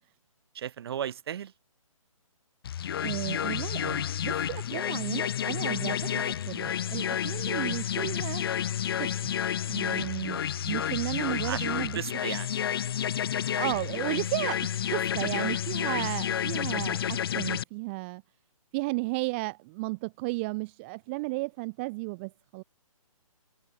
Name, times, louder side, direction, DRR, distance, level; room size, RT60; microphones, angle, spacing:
voice 1, 0.5-1.5 6.0-6.3 11.4-11.7 11.9-12.5, right 9 dB, 45° right, 7.4 m, -35 dB
sound 1, 2.6-17.6, left 9 dB, 40° left, 1.2 m, -30 dB
voice 2, 3.0-8.4 9.0-9.3 9.7-10.4 10.7-12.0 13.5-18.2 18.7-22.6, right 26 dB, 20° right, 0.9 m, -34 dB
hypercardioid pair, 155°, 18 cm